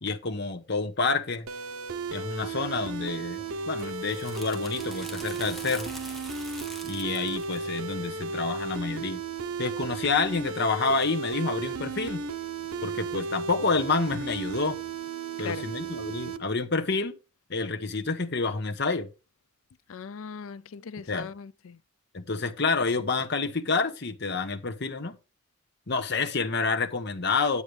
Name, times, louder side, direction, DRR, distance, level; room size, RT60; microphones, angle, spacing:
voice 1, 0.0-1.5 2.1-5.9 6.8-9.2 9.6-12.2 12.8-14.8 15.4-17.1 17.5-19.1 21.0-21.3 22.1-25.1 25.9-27.6, left 4 dB, 50° left, 1.1 m, -28 dB
sound 1, 1.5-16.4, right 4 dB, 85° right, 0.9 m, -34 dB
sound 2, 3.3-8.8, equal, ahead, 1.1 m, -45 dB
voice 2, 19.9-21.8, left 6 dB, 75° left, 0.5 m, -39 dB
9.8 x 8.3 x 3.3 m
head